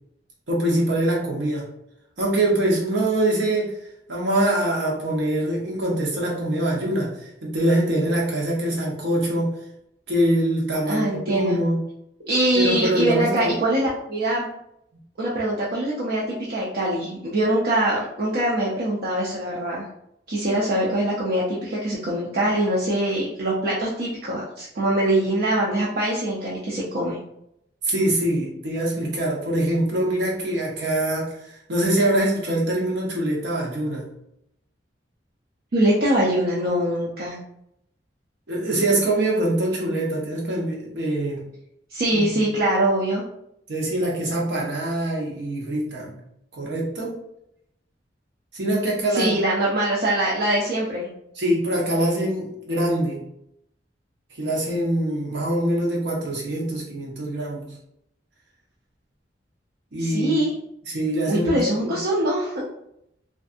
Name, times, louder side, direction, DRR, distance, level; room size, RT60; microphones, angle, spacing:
voice 1, 0.5-1.7 2.2-9.5 10.1-11.8 12.5-13.5 27.8-34.1 38.5-41.4 42.1-42.4 43.7-46.2 46.5-47.1 48.5-49.3 51.3-53.2 54.3-57.8 59.9-60.4 60.9-62.0, right 1 dB, 85° right, -3 dB, 0.9 m, -24 dB
voice 2, 10.9-11.6 12.3-14.5 15.2-19.9 20.3-27.2 35.7-37.4 41.9-43.2 49.1-51.1 60.0-60.5 61.3-62.6, right 1 dB, 60° right, -5 dB, 0.5 m, -23 dB
2.5 x 2.5 x 2.4 m, 0.77 s
head